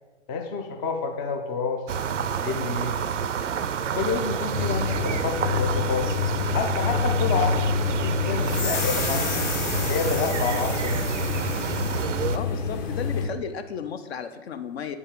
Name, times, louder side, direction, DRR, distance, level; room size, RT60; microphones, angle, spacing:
voice 1, 0.3-1.9 2.2-3.0 3.8-6.1 6.5-9.5 9.9-11.1, left 5 dB, 15° left, 4 dB, 0.3 m, -29 dB
sound 1, 1.9-12.4, right 7 dB, 85° right, 0.5 m, -29 dB
sound 2, 4.5-13.3, left 5 dB, 40° left, 1.0 m, -28 dB
sound 3, 8.4-12.1, left 3 dB, 85° left, 1.0 m, -32 dB
voice 2, 12.3-15.0, left 7 dB, 60° left, 10 dB, 0.7 m, -34 dB
8.1 x 5.3 x 3.7 m, 1.2 s
figure-of-eight pair, 110°, 35 cm